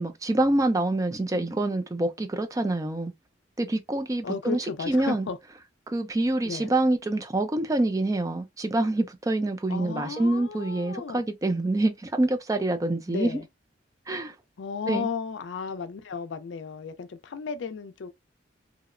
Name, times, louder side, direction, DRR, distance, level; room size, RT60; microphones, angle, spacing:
voice 1, 0.0-3.1 3.6-5.3 5.9-13.4 14.1-14.3 14.9-15.1, right 2 dB, 20° right, 0.4 m, -26 dB
voice 2, 4.2-5.4 6.4-6.7 9.7-11.2 13.1-13.4 14.6-18.1, left 5 dB, 75° left, 0.4 m, -34 dB
2.8 x 2.0 x 2.4 m
head